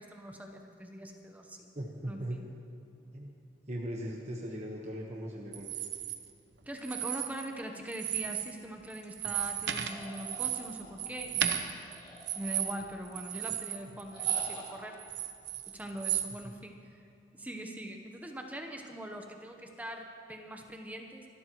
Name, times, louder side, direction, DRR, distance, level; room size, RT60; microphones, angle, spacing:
voice 1, 0.0-1.7 2.1-2.4 6.7-11.6 12.3-15.0 15.7-16.8 17.3-21.3, equal, 10° right, 3 dB, 0.9 m, -42 dB
voice 2, 1.7-2.4 3.1-3.3 3.7-5.7, right 1 dB, 40° right, -1 dB, 1.2 m, -38 dB
sound 1, 5.5-6.2 6.8-7.6 7.9-8.5 8.8-14.7 15.0-16.3, right 10 dB, 80° right, 0.9 m, -34 dB
sound 2, 9.9-11.2 11.9-13.0 14.1-14.9, left 1 dB, 30° left, 2.3 m, -47 dB
25.5 x 12.5 x 3.1 m, 2.5 s
head